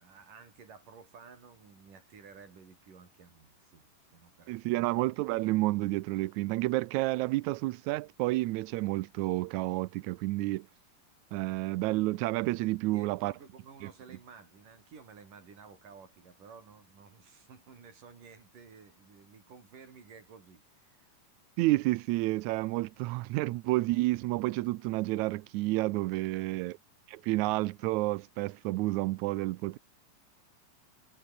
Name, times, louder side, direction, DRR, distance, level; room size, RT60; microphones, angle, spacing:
voice 1, 0.0-4.9 12.8-21.1 26.2-26.8, right 5 dB, 65° right, 6.1 m, -54 dB
voice 2, 4.5-10.7 11.3-13.3 13.8-13.9 21.6-26.8 27.1-29.8, right 19 dB, 90° right, 1.6 m, -30 dB
omnidirectional pair, 4.0 m